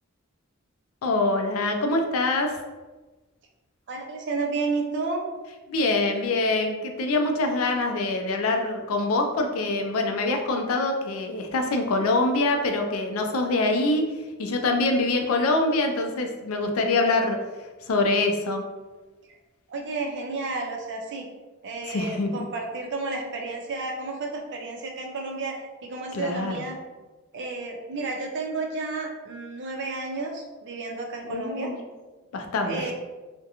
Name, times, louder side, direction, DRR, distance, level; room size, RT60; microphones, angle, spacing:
voice 1, 1.0-2.6 5.7-14.0 14.4-17.4 17.8-18.6 21.9-22.5 26.1-26.6 31.2-31.8 32.3-32.9, left 2 dB, 85° left, 4 dB, 0.4 m, -24 dB
voice 2, 3.9-5.2 19.3-19.4 19.7-21.3 21.6-26.8 27.3-31.7 32.7-32.9, right 3 dB, 60° right, 1 dB, 0.5 m, -31 dB
2.4 x 2.1 x 2.8 m, 1.2 s
head